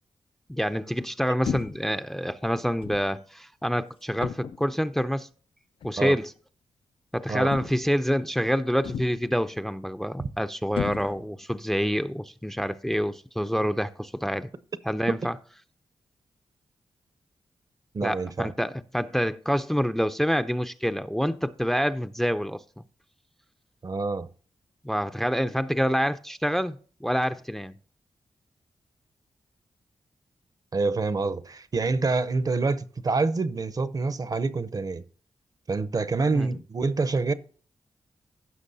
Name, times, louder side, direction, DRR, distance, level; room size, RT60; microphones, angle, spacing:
voice 1, 0.5-5.3 5.8-6.3 7.1-14.5 14.9-15.3 18.0-22.6 24.8-27.7 36.3-36.5, equal, 5° left, 0.4 m, -27 dB
sound 1, 1.4-1.9 2.8-3.1 4.2-4.7 5.8-6.0 7.5-8.0 8.8-9.3 10.7-11.4, left 8 dB, 70° left, 0.4 m, -34 dB
voice 2, 17.9-18.5 23.8-24.3 30.7-35.0 35.7-37.3, right 3 dB, 40° right, 0.6 m, -26 dB
15.0 x 6.0 x 2.7 m
cardioid pair, 65°, 9 cm